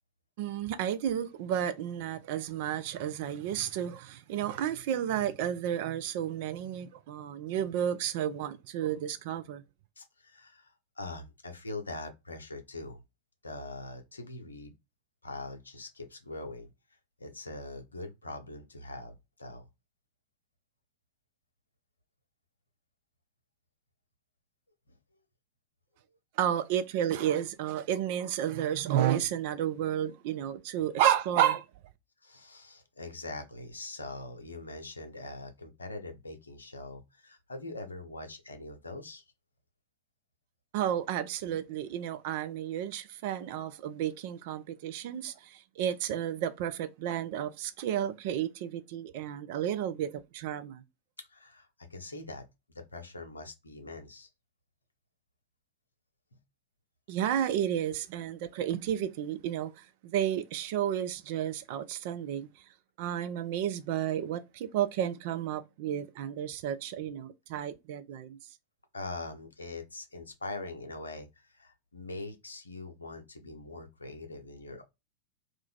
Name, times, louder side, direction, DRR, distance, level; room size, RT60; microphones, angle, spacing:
voice 1, 0.4-9.6 26.4-31.6 40.7-45.3 45.8-50.8 57.1-59.7 60.0-62.5 63.0-68.4, right 10 dB, 50° right, 0.4 m, -31 dB
voice 2, 10.0-13.0 13.4-14.7 15.2-16.7 17.2-19.7 24.9-25.0 32.2-39.2 51.2-54.3 68.9-74.8, left 2 dB, 75° left, 0.6 m, -43 dB
2.5 x 2.3 x 3.4 m
figure-of-eight pair, 90°, 0 cm